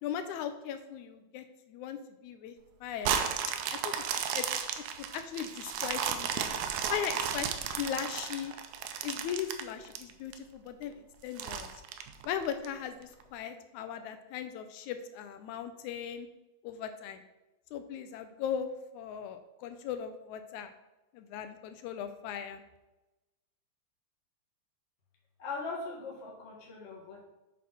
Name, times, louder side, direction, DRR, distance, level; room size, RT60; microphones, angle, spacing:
voice 1, 0.0-2.0 2.2-2.6 2.8-3.2 3.8-3.9 4.3-4.5 5.1-6.5 6.9-7.5 7.8-8.5 9.0-10.9 11.2-11.7 12.3-16.3 16.6-17.2 17.7-18.7 18.9-20.7 21.2-22.6, left 9 dB, 85° left, 9 dB, 2.0 m, -38 dB
sound 1, 3.0-10.3 10.8-10.9 11.4-12.7 13.2-13.3, right 8 dB, 80° right, 2.0 m, -34 dB
voice 2, 25.4-27.3, left 3 dB, 35° left, -1 dB, 1.2 m, -40 dB
7.6 x 4.2 x 5.7 m, 1.0 s
omnidirectional pair, 3.4 m